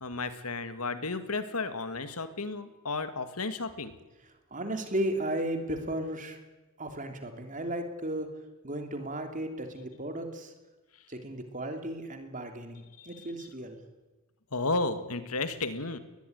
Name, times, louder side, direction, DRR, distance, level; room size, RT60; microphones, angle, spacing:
voice 1, 0.0-4.0 13.0-13.5 14.5-16.0, left 3 dB, 85° left, 11 dB, 2.0 m, -33 dB
voice 2, 4.5-6.4 6.8-8.3 8.6-10.5 11.1-13.8, right 1 dB, 35° right, 6 dB, 3.2 m, -35 dB
21.0 x 21.0 x 9.5 m, 1.2 s
head